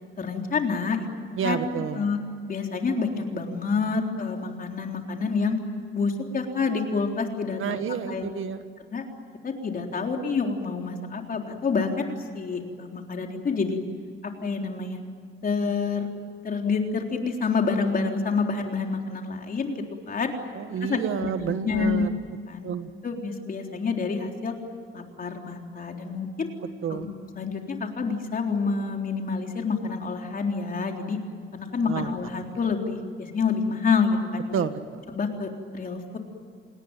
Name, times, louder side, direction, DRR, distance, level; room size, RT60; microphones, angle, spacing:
voice 1, 0.2-1.1 1.4-2.2 2.5-5.6 5.9-7.8 8.1-8.3 8.8-9.0 9.4-13.8 14.2-15.0 15.4-16.1 16.4-20.3 20.8-22.1 22.5-22.7 23.0-24.5 24.9-26.5 26.9-31.2 31.5-34.6 35.1-36.2, left 4 dB, 40° left, 2 dB, 3.7 m, -28 dB
voice 2, 1.4-2.0 7.6-8.6 20.5-22.2 22.6-22.9 26.8-27.1 31.9-32.2 32.5-32.6 34.5-35.0, right 7 dB, 75° right, 9 dB, 1.8 m, -29 dB
29.0 x 19.5 x 9.1 m, 2.1 s
cardioid pair, 130°, 21 cm